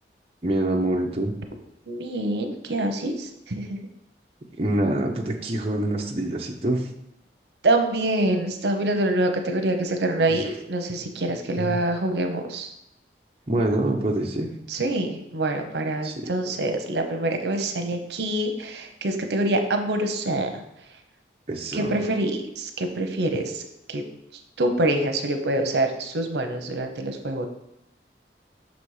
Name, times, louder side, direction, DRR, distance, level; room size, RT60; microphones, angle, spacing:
voice 1, 0.4-1.3 4.6-6.9 10.3-10.4 11.5-11.8 13.5-14.5 16.0-16.1 21.5-21.9, right 1 dB, 35° right, -1 dB, 0.7 m, -25 dB
voice 2, 1.9-3.8 7.6-12.7 14.7-20.6 21.7-24.0 24.6-27.5, right 1 dB, 75° right, 5 dB, 0.8 m, -25 dB
6.2 x 4.2 x 4.8 m, 0.85 s
head